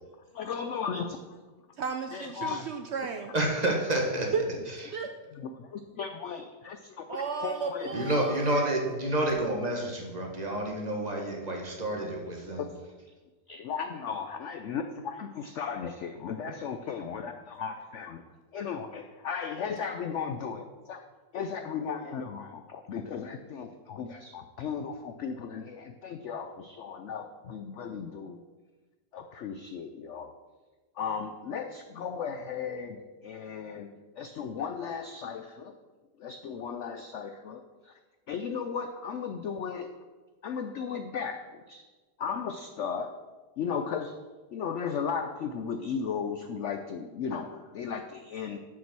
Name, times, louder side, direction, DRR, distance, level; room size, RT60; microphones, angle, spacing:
voice 1, 0.4-1.2 2.1-2.6 5.3-7.9 12.5-12.7 13.5-18.2 18.5-21.0 21.3-28.4 29.1-30.3 31.0-33.9 34.2-35.7 36.2-38.0 38.3-39.9 40.4-41.8 42.2-43.1 43.6-44.1 44.5-48.6, left 6 dB, 70° left, 7 dB, 0.7 m, -36 dB
voice 2, 1.8-3.3 4.3-4.5 4.9-5.1 7.1-8.7, right 5 dB, 90° right, 5 dB, 0.5 m, -34 dB
voice 3, 3.3-4.3 7.9-9.8 10.1-12.6, right 1 dB, 25° right, 0 dB, 1.4 m, -29 dB
7.0 x 6.2 x 6.0 m, 1.3 s
omnidirectional pair, 1.8 m